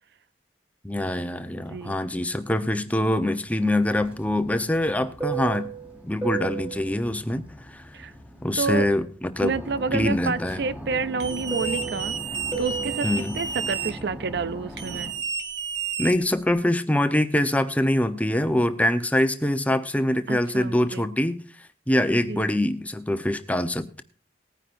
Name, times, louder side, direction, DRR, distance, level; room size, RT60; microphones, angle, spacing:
voice 1, 0.8-5.7 6.0-7.8 8.4-9.5 9.9-10.6 13.0-13.3 16.0-21.4 21.9-24.0, left 1 dB, 10° left, 0.9 m, -24 dB
voice 2, 1.7-2.0 7.9-8.1 8.6-8.9 9.4-12.1 12.6-15.1 20.3-21.1 22.3-22.5, right 4 dB, 60° right, 0.5 m, -29 dB
Fixed-wing aircraft airplane, 3.6-9.0 9.3-15.1, right 5 dB, 10° right, 2.5 m, -35 dB
sound 1, 11.2-13.9 14.8-16.6, right 5 dB, 80° right, 2.2 m, -31 dB
20.0 x 9.9 x 2.6 m
head